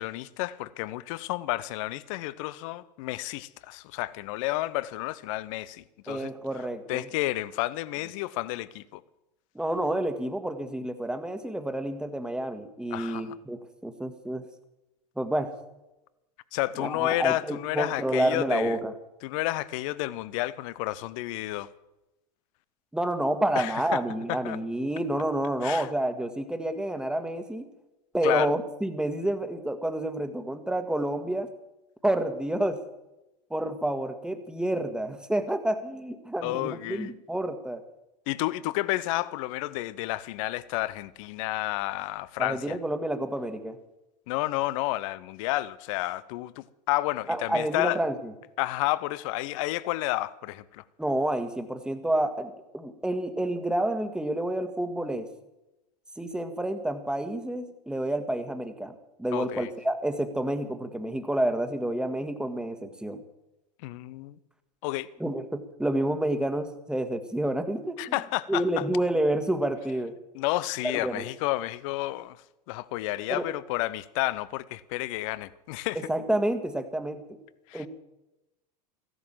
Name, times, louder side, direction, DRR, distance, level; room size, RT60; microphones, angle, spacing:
voice 1, 0.0-6.3 6.9-9.0 12.9-13.4 16.5-18.8 19.2-21.7 23.5-24.0 24.3-24.6 25.6-25.9 28.2-28.5 36.4-37.1 38.3-42.8 44.3-48.0 48.6-50.8 59.3-59.7 63.8-64.4 64.8-65.1 68.0-68.8 70.3-72.4 72.7-76.0 77.7-77.9, left 17 dB, 50° left, 0.8 m, -31 dB
voice 2, 6.1-7.1 9.5-14.4 15.2-15.5 16.8-18.9 22.9-27.7 28.1-31.5 32.0-32.8 33.5-37.8 42.4-43.8 47.3-48.3 51.0-55.3 56.2-63.2 65.2-68.2 68.5-70.1 70.8-71.2 73.3-73.5 75.9-77.4 77.7-77.9, right 1 dB, 5° right, 1.7 m, -29 dB
15.5 x 11.0 x 7.5 m
figure-of-eight pair, 85°, 21 cm